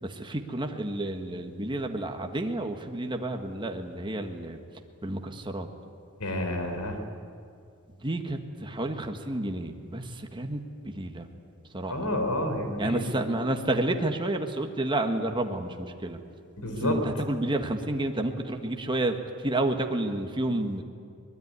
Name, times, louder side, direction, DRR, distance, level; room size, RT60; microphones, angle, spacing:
voice 1, 0.0-4.6 5.0-5.7 8.0-11.3 11.7-12.1 12.8-16.2 16.8-19.2 19.4-20.8, right 1 dB, 20° right, 4 dB, 1.6 m, -30 dB
voice 2, 6.2-7.0 11.9-13.2 16.6-17.0, left 1 dB, 85° left, 6 dB, 4.1 m, -29 dB
23.5 x 21.0 x 9.7 m, 2.4 s
head